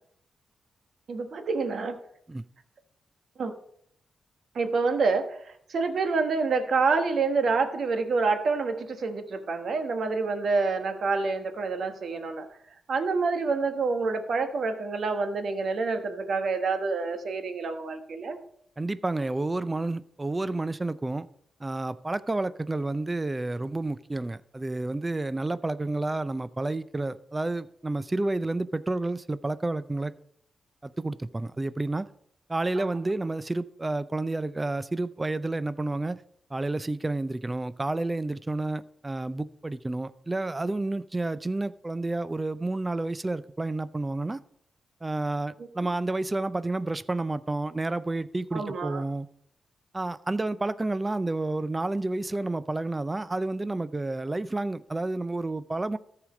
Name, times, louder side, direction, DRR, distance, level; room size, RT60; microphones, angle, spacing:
voice 1, 1.1-2.0 3.4-3.5 4.5-12.5 12.9-18.4 32.8-33.0 45.8-45.9 48.5-49.0, right 4 dB, 65° right, 1.3 m, -27 dB
voice 2, 18.8-21.3 21.6-30.1 30.8-32.0 32.5-36.2 36.5-44.4 45.0-49.3 49.9-56.0, right 2 dB, 20° right, 0.5 m, -30 dB
13.5 x 5.0 x 5.1 m
cardioid pair, 85°, 0 cm